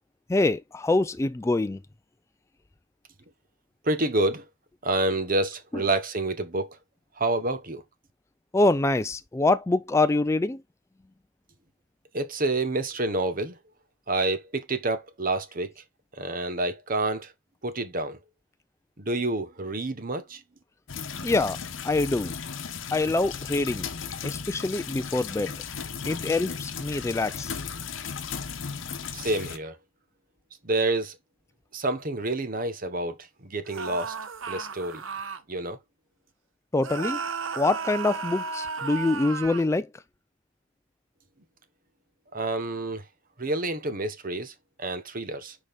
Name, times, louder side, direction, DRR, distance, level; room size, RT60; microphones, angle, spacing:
voice 1, 0.3-1.8 5.7-5.8 8.5-10.6 21.2-21.6 21.8-22.3 22.9-23.9 24.2-25.6 26.0-27.6 36.7-37.2 37.6-39.9, left 2 dB, 15° left, 0.3 m, -25 dB
voice 2, 3.8-4.4 4.8-6.8 7.2-7.8 12.1-13.6 14.1-15.8 16.1-17.3 17.6-18.2 19.0-20.4 29.1-29.8 30.6-31.2 31.7-33.2 33.4-34.1 34.5-35.0 35.5-35.8 42.3-43.0 43.4-45.6, right 2 dB, 45° right, 1.1 m, -28 dB
sound 1, 20.9-29.6, left 6 dB, 75° left, 0.9 m, -36 dB
sound 2, 33.7-35.4 36.8-39.7, right 5 dB, 85° right, 1.0 m, -34 dB
6.3 x 5.0 x 3.5 m
head